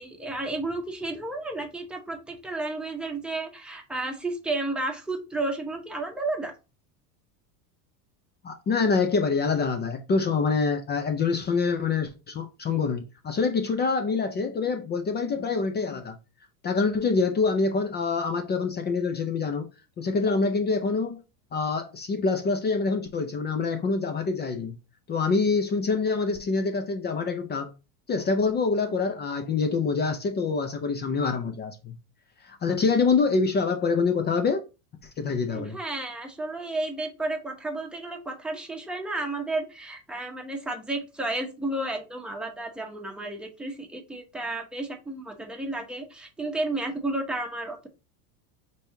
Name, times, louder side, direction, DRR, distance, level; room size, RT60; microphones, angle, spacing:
voice 1, 0.0-6.5 35.5-47.9, right 2 dB, ahead, 0.9 m, -32 dB
voice 2, 8.4-16.2 16.6-19.7 20.0-21.2 21.5-24.7 25.1-27.7 28.1-31.9 32.4-34.6 35.2-35.8, left 4 dB, 20° left, 0.4 m, -26 dB
5.3 x 3.4 x 2.7 m
supercardioid pair, 125°, 49 cm